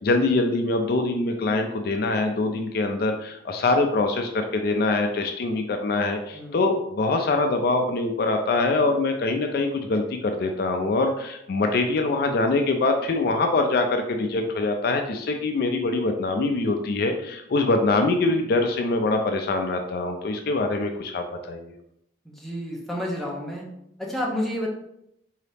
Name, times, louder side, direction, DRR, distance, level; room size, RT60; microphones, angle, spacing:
voice 1, 0.0-21.7, left 2 dB, 55° left, 5 dB, 0.4 m, -24 dB
voice 2, 6.3-6.7 22.3-23.6 24.0-24.7, equal, ahead, -4 dB, 0.8 m, -30 dB
3.8 x 2.8 x 3.4 m, 0.78 s
head